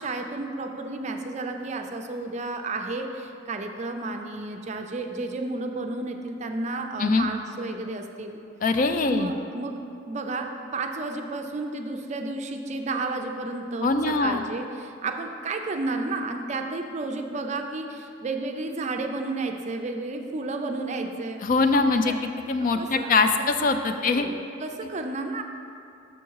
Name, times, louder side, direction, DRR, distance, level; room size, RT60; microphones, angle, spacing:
voice 1, 0.0-8.4 9.1-9.8 10.1-21.4 22.1-22.2 22.8-23.5 23.9-25.4, right 3 dB, 35° right, 5 dB, 0.4 m, -32 dB
voice 2, 8.6-9.3 13.8-14.4 21.4-22.1 22.5-24.3, left 3 dB, 45° left, 7 dB, 0.3 m, -22 dB
6.3 x 5.8 x 4.6 m, 2.5 s
head